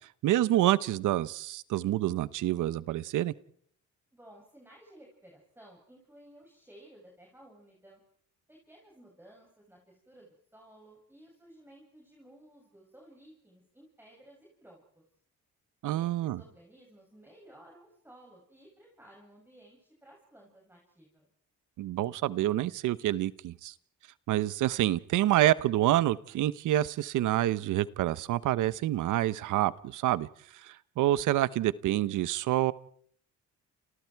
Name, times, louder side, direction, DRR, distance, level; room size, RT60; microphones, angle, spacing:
voice 1, 0.2-3.3 15.8-16.4 21.8-23.7 24.3-30.3 30.6-32.7, right 14 dB, 80° right, 1.0 m, -27 dB
voice 2, 4.1-8.0 8.5-15.0 15.9-21.3, right 1 dB, 5° right, 7.7 m, -56 dB
29.5 x 29.0 x 4.7 m
cardioid pair, 90°, 30 cm